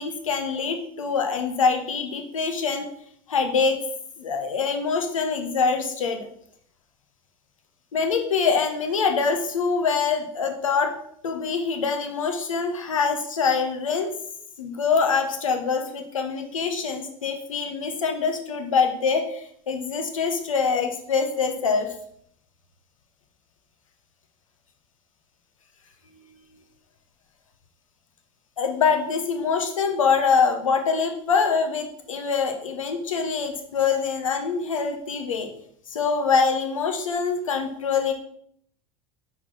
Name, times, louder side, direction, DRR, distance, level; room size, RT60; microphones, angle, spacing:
voice 1, 0.0-2.9 3.3-3.8 4.2-6.3 7.9-10.9 11.2-14.2 14.6-21.9 28.6-35.5 35.9-38.1, left 5 dB, 75° left, 5 dB, 0.9 m, -24 dB
5.9 x 3.9 x 4.2 m, 0.66 s
figure-of-eight pair, 75°, 17 cm